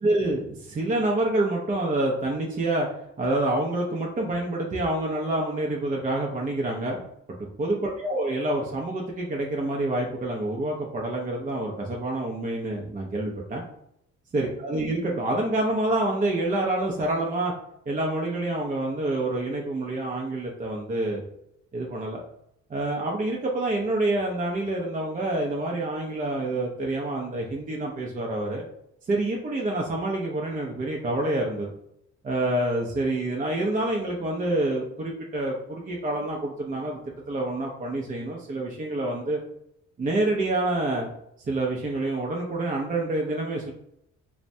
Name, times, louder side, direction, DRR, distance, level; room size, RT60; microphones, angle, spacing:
voice 1, 0.0-2.9 3.2-7.0 7.4-13.6 14.3-17.5 17.9-21.2 21.7-22.2 22.7-28.6 29.1-31.7 32.2-37.0 37.3-39.4 40.0-41.1 41.5-43.7, right 2 dB, 25° right, -1 dB, 0.5 m, -27 dB
3.2 x 2.1 x 2.6 m, 0.77 s
cardioid pair, 90°, 30 cm